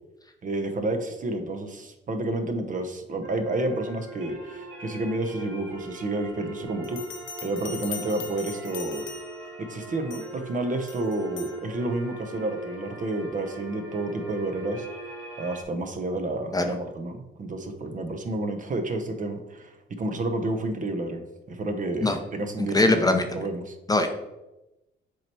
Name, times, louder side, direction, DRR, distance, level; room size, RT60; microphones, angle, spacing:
voice 1, 0.4-7.0 7.4-9.0 9.6-14.9 15.4-23.7, right 2 dB, 40° right, 6 dB, 0.9 m, -30 dB
sound 1, 3.2-15.6, right 3 dB, 90° right, 1.7 m, -41 dB
Bell, 6.8-9.5 10.1-10.4 10.9-11.6, left 7 dB, 70° left, 0.9 m, -40 dB
voice 2, 22.6-23.3 23.9-24.1, left 2 dB, 20° left, 5 dB, 0.7 m, -21 dB
7.3 x 3.0 x 4.5 m, 0.98 s
cardioid pair, 90°, 20 cm